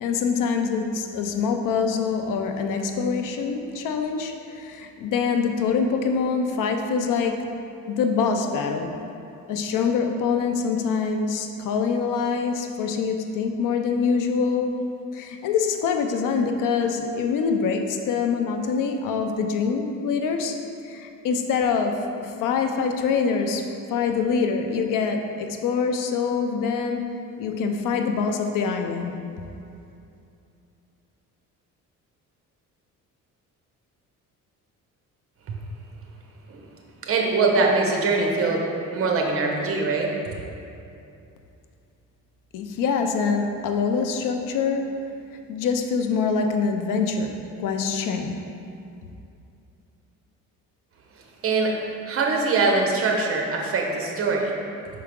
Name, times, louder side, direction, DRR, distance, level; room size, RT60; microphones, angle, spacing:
voice 1, 0.0-7.4 7.9-8.9 9.5-14.7 15.1-20.6 20.8-22.0 22.2-27.0 27.4-29.1 42.5-44.8 45.5-47.3 47.6-48.4, left 5 dB, 70° left, 5 dB, 0.6 m, -25 dB
voice 2, 37.0-38.6 38.9-40.1 51.4-51.7 52.1-54.5, right 3 dB, 45° right, 1 dB, 1.0 m, -22 dB
5.8 x 4.7 x 3.7 m, 2.6 s
cardioid pair, 110°, 33 cm